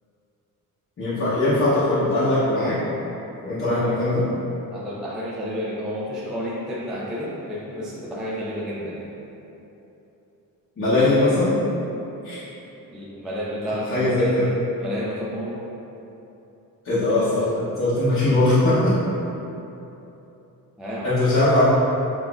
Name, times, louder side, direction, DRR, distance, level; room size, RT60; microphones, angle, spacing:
voice 1, 1.0-2.8 3.4-4.3 10.8-11.6 12.2-12.4 13.9-14.5 16.8-19.0 21.0-21.7, left 2 dB, 35° left, -12 dB, 0.8 m, -20 dB
voice 2, 4.7-9.1 12.9-14.5 14.8-15.6 20.8-21.2, equal, ahead, -7 dB, 0.3 m, -31 dB
6.7 x 2.5 x 2.3 m, 3.0 s
wide cardioid pair, 165°, 36 cm